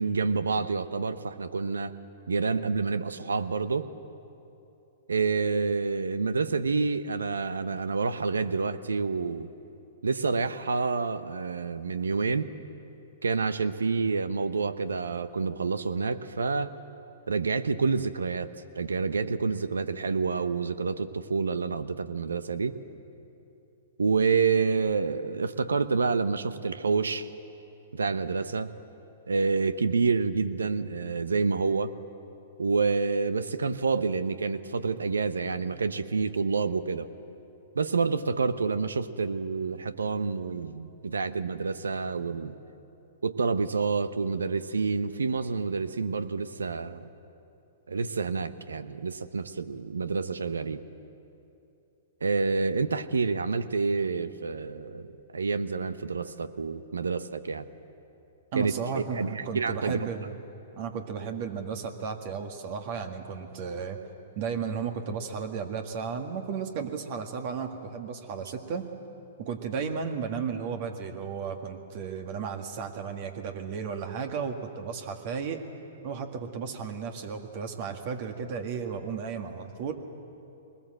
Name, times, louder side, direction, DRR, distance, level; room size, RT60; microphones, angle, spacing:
voice 1, 0.0-1.9 2.3-3.9 5.1-9.5 10.0-12.5 13.2-16.8 17.3-22.8 24.0-27.3 27.9-28.7 29.3-32.0 32.6-37.1 37.7-42.6 43.2-47.1 47.9-50.8 52.2-55.1 55.3-57.6 58.5-58.7 59.2-60.1, right 4 dB, 80° right, 13 dB, 0.9 m, -28 dB
voice 2, 58.5-60.4 60.7-64.0 64.3-68.8 69.4-75.6 76.0-79.9, right 6 dB, 50° right, 5 dB, 1.7 m, -34 dB
22.0 x 20.0 x 7.7 m, 2.8 s
hypercardioid pair, 115°, 0 cm